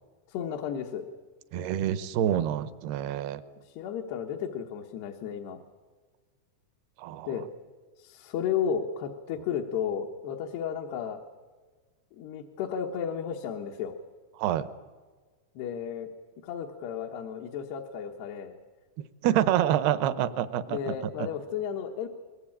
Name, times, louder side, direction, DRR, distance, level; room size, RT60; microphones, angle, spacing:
voice 1, 0.3-1.0 3.6-5.6 7.3-7.5 8.0-11.2 12.1-13.9 15.6-16.1 16.4-18.5 20.7-22.1, left 8 dB, 75° left, 1 dB, 3.3 m, -33 dB
voice 2, 1.5-3.4 7.0-7.3 14.4-14.7 19.2-20.9 21.2-21.3, right 11 dB, 75° right, 13 dB, 2.9 m, -27 dB
22.5 x 21.5 x 8.7 m, 1.4 s
omnidirectional pair, 4.8 m